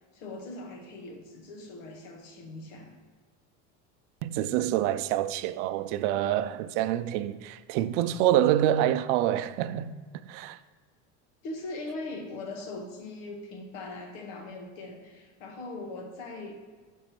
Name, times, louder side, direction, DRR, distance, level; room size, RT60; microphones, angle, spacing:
voice 1, 0.1-2.9 11.4-16.5, left 2 dB, 80° left, 1.4 m, -40 dB
voice 2, 4.2-9.9 10.2-10.6, right 12 dB, 70° right, 0.5 m, -26 dB
6.3 x 5.3 x 3.0 m
supercardioid pair, 95°, 37 cm